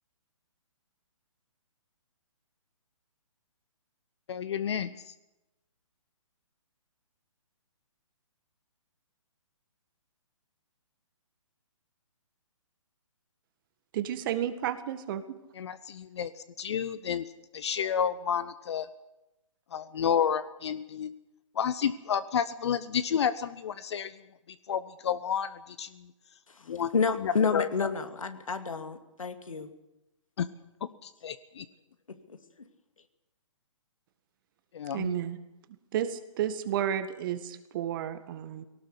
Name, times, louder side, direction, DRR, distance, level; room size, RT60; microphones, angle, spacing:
voice 1, 4.3-5.1 15.6-16.3 16.6-17.2 17.5-18.9 19.7-21.1 21.5-24.1 24.7-26.1 26.7-26.9 27.2-27.7 30.4-30.5 30.8-31.6 34.7-35.2, left 8 dB, 55° left, 15 dB, 1.0 m, -30 dB
voice 2, 13.9-15.2 34.9-35.4 35.9-38.6, right 10 dB, 40° right, 11 dB, 1.9 m, -32 dB
voice 3, 26.9-29.7 32.3-32.4, left 5 dB, 80° left, 8 dB, 2.5 m, -29 dB
19.0 x 18.0 x 8.2 m, 0.96 s
figure-of-eight pair, 135°, 17 cm